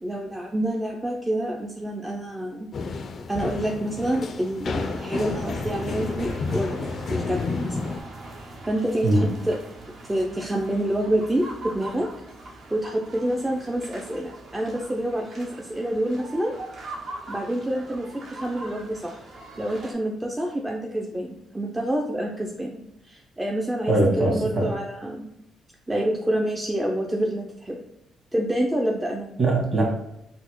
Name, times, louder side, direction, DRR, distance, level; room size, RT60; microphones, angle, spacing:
voice 1, 0.0-2.7 3.3-7.8 8.7-9.6 10.0-12.1 12.7-16.6 17.3-19.2 19.6-22.8 23.0-25.3 25.9-27.8 28.3-29.3, right 1 dB, 15° right, 0 dB, 0.4 m, -27 dB
sound 1, 2.7-8.0, left 4 dB, 55° left, 0.3 m, -30 dB
sound 2, 4.8-19.9, right 2 dB, 60° right, 0.8 m, -41 dB
voice 2, 23.9-24.8 29.4-29.9, right 2 dB, 40° right, -2 dB, 1.5 m, -21 dB
4.1 x 2.0 x 2.9 m, 0.85 s
cardioid pair, 90°, 0 cm